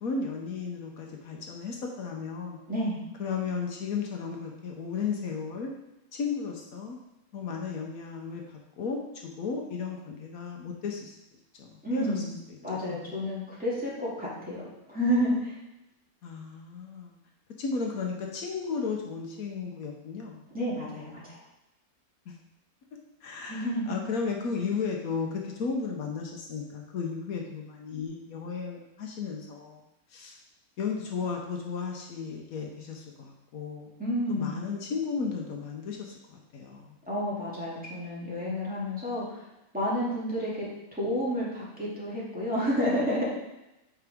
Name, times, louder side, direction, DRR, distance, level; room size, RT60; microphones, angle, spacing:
voice 1, 0.0-2.6 3.2-5.7 6.1-7.0 7.3-11.2 11.6-12.2 12.9-13.0 16.2-17.2 17.6-20.4 22.3-22.4 23.2-29.8 30.1-30.4 30.8-33.9 34.3-37.0, left 5 dB, 75° left, 1 dB, 1.3 m, -34 dB
voice 2, 2.7-3.0 11.8-12.3 12.6-14.6 14.9-15.6 20.5-21.4 23.5-23.9 34.0-34.6 37.1-39.4 39.7-40.6 40.9-43.2, equal, 5° right, -8 dB, 2.4 m, -30 dB
8.7 x 4.6 x 3.6 m, 0.92 s
omnidirectional pair, 1.6 m